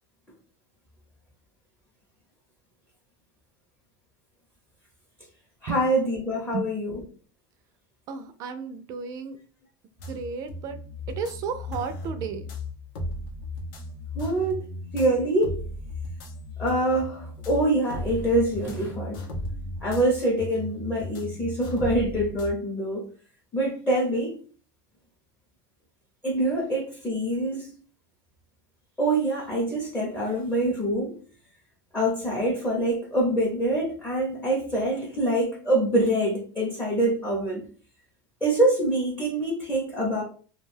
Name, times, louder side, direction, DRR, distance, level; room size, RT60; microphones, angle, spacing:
voice 1, 5.6-7.0 14.1-14.6 14.9-15.6 16.6-19.2 19.8-23.0 23.5-24.4 26.2-27.7 29.0-31.2 31.9-37.6 38.4-40.2, right 1 dB, 10° left, -4 dB, 0.6 m, -25 dB
voice 2, 8.1-9.4 10.1-10.8 11.1-12.5, right 5 dB, 35° right, 9 dB, 0.4 m, -33 dB
sound 1, 10.0-22.5, left 1 dB, 80° left, 0.7 m, -36 dB
2.3 x 2.2 x 3.2 m, 0.41 s
supercardioid pair, 155°, 10 cm